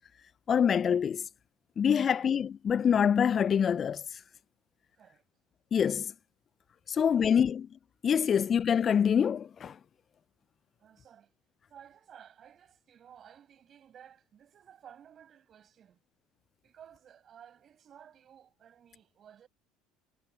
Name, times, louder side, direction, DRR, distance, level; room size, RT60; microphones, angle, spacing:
voice 1, 0.5-1.2 1.8-4.0 5.7-6.1 7.0-7.7 8.0-9.8, left 7 dB, 40° left, 0.4 m, -25 dB
voice 2, 1.9-2.3 5.0-5.2 6.9-7.5 8.3-8.5 10.8-11.3 11.7-16.0 16.6-19.5, right 9 dB, 45° right, 7.1 m, -55 dB
hypercardioid pair, 70°, 0 cm